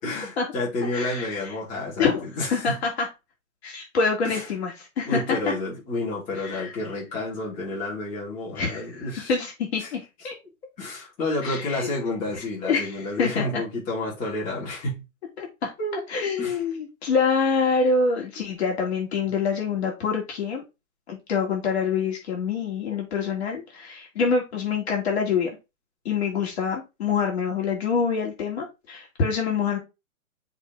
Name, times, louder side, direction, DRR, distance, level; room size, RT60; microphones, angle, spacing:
voice 1, 0.0-2.7 4.2-4.4 5.1-9.3 9.8-9.9 10.8-15.0 15.8-16.0 16.4-16.6, left 2 dB, 15° left, -5 dB, 3.2 m, -30 dB
voice 2, 0.9-1.5 2.0-2.2 2.5-3.1 3.6-5.5 6.4-6.7 8.5-10.3 11.4-11.9 12.6-13.6 15.4-15.7 16.1-20.6 21.1-25.5 26.0-29.8, left 5 dB, 50° left, 0 dB, 3.0 m, -26 dB
7.1 x 4.0 x 4.7 m, 0.25 s
hypercardioid pair, 160°, 42 cm